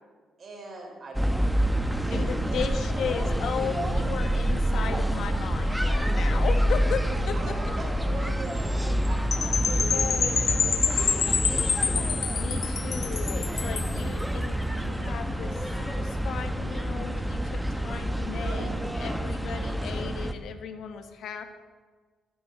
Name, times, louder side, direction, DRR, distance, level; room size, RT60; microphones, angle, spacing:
voice 1, 0.4-2.9 7.3-12.1 18.3-18.8, right 2 dB, 45° right, -1 dB, 5.4 m, -41 dB
sound 1, 1.1-20.3, equal, 5° right, 1.0 m, -27 dB
voice 2, 2.1-7.7 9.9-10.4 12.4-21.4, left 7 dB, 70° left, 7 dB, 1.4 m, -36 dB
Percussion / Wind chime, 9.3-14.0, left 6 dB, 50° left, 1.1 m, -27 dB
12.5 x 9.6 x 8.0 m, 1.5 s
cardioid pair, 90°, 0 cm